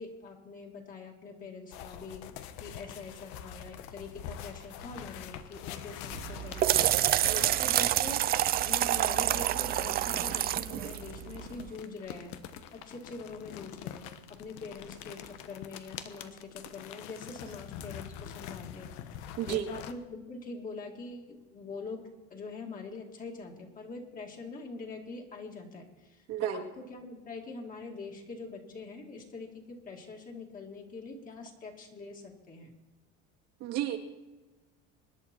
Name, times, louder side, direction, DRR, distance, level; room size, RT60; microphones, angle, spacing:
voice 1, 0.0-8.2 8.6-12.3 12.8-22.0 22.3-26.2 26.5-32.7, left 3 dB, 30° left, 1 dB, 2.5 m, -44 dB
sound 1, 1.7-8.3 9.5-19.9, left 10 dB, 85° left, 1.3 m, -45 dB
sound 2, 6.1-11.7, right 12 dB, 30° right, 0.5 m, -28 dB
voice 2, 19.4-19.7 26.3-26.6 33.6-34.0, right 12 dB, 60° right, 2 dB, 2.1 m, -32 dB
25.0 x 11.0 x 4.6 m, 1.1 s
cardioid pair, 170°, 29 cm